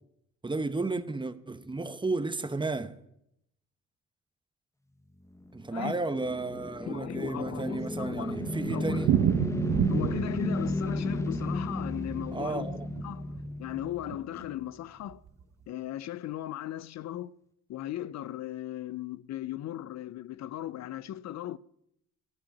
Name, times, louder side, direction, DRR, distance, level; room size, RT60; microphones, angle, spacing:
voice 1, 0.4-3.0 5.5-9.1 12.3-12.9, right 3 dB, 15° right, 0.9 m, -33 dB
sound 1, 5.3-14.6, left 2 dB, 10° left, 1.0 m, -34 dB
voice 2, 6.9-8.4 8.7-9.1 9.9-12.7 13.0-13.3 13.6-15.2 15.7-17.3 17.7-21.6, left 13 dB, 60° left, 0.5 m, -37 dB
Thunder, 7.2-13.5 13.7-13.8 14.1-14.2 14.4-14.5 15.1-15.4, right 10 dB, 70° right, 0.8 m, -31 dB
15.5 x 5.6 x 9.9 m
cardioid pair, 90°, 30 cm